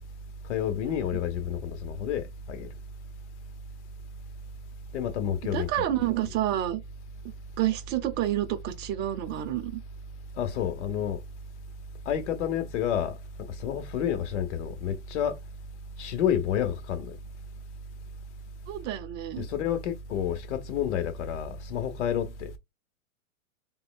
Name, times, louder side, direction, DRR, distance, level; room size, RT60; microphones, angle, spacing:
voice 1, 0.5-2.7 4.9-5.7 10.4-11.2 12.1-13.2 13.6-15.4 16.0-17.2 19.4-22.5, left 9 dB, 60° left, 1.0 m, -29 dB
voice 2, 5.4-6.8 7.6-9.8 18.7-19.5, right 12 dB, 25° right, 0.7 m, -29 dB
3.6 x 3.1 x 2.3 m
hypercardioid pair, 125°, 40 cm